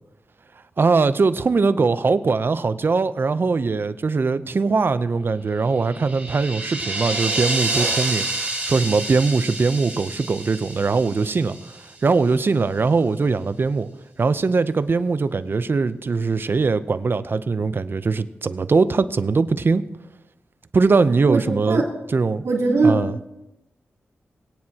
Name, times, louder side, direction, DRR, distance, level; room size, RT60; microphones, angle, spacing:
voice 1, 0.8-11.6 12.0-13.9 14.2-19.8 20.7-21.8 22.1-22.4 22.8-23.2, right 4 dB, 50° right, 13 dB, 0.6 m, -21 dB
sound 1, 5.7-11.9, right 2 dB, 30° right, 3.9 m, -28 dB
voice 2, 21.3-21.9 22.4-23.3, right 3 dB, 85° right, -3 dB, 3.7 m, -21 dB
22.5 x 9.7 x 2.9 m, 0.97 s
cardioid pair, 70°, 5 cm